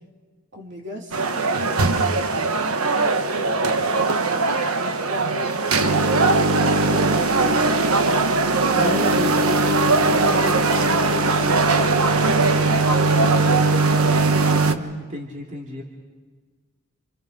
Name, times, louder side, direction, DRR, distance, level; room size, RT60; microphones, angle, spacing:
voice 1, 0.5-4.3 4.8-8.3 9.0-13.3, equal, 55° right, 1 dB, 3.3 m, -36 dB
sound 1, 1.1-14.7, right 3 dB, 90° right, 1.2 m, -19 dB
voice 2, 8.7-9.4 10.3-10.6 14.4-15.8, equal, 35° right, -1 dB, 2.6 m, -32 dB
28.0 x 28.0 x 5.3 m, 1.4 s
head